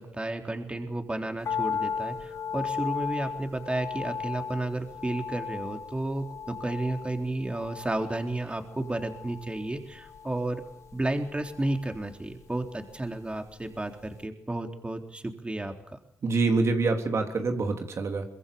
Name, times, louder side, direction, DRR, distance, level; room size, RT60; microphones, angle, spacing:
voice 1, 0.0-10.6 10.9-15.7, right 2 dB, 20° right, 5 dB, 3.7 m, -32 dB
sound 1, 1.4-13.7 14.0-14.1, left 6 dB, 75° left, 2.2 m, -37 dB
voice 2, 16.2-18.2, right 3 dB, 65° right, 4 dB, 3.5 m, -26 dB
24.5 x 21.5 x 7.1 m, 0.76 s
cardioid pair, 55°, 5 cm